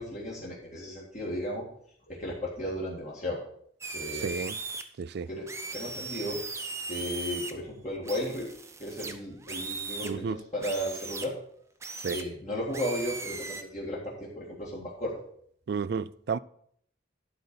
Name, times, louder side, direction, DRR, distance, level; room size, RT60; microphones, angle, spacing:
voice 1, 0.0-1.6 2.1-3.4 3.9-4.3 5.3-6.4 6.9-8.5 8.8-11.3 12.1-15.2, equal, 35° left, 1.9 m, -35 dB
sound 1, 3.8-4.8 5.5-7.5 8.0-10.1 10.6-11.3 11.8-12.2 12.7-13.6, right 3 dB, 15° right, 0.6 m, -38 dB
voice 2, 4.2-4.5 5.0-5.3 10.0-10.4 12.0-12.2 15.7-16.4, right 5 dB, 55° right, 0.3 m, -31 dB
11.5 x 4.1 x 6.8 m
head